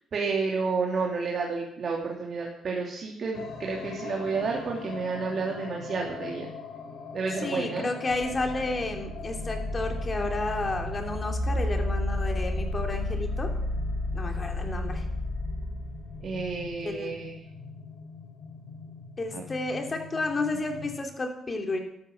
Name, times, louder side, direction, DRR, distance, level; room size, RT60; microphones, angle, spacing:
voice 1, 0.1-6.5 7.1-7.9 16.2-17.4 19.3-19.4, right 4 dB, 50° right, -1 dB, 3.0 m, -30 dB
sound 1, 3.3-21.0, left 5 dB, 80° left, 3.8 m, -43 dB
voice 2, 7.4-13.5 14.1-15.0 16.8-17.1 19.2-21.8, left 2 dB, 30° left, 3 dB, 3.3 m, -31 dB
sound 2, 8.1-16.9, left 1 dB, 55° left, 5.8 m, -32 dB
12.5 x 12.5 x 7.2 m, 0.76 s
cardioid pair, 90°, 0 cm